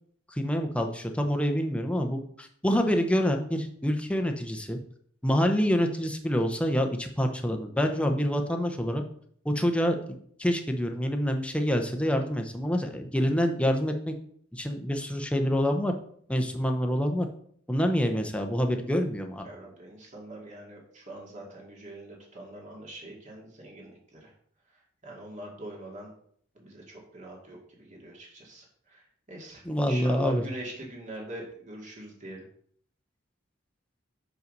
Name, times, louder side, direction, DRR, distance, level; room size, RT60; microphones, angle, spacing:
voice 1, 0.3-4.8 5.2-9.0 9.4-14.1 14.5-15.9 16.3-17.3 17.7-19.5 29.6-30.4, equal, 5° left, 4 dB, 0.8 m, -27 dB
voice 2, 19.4-24.3 25.0-26.1 26.5-32.4, right 1 dB, 35° right, -2 dB, 2.3 m, -43 dB
6.4 x 5.5 x 5.3 m, 0.62 s
head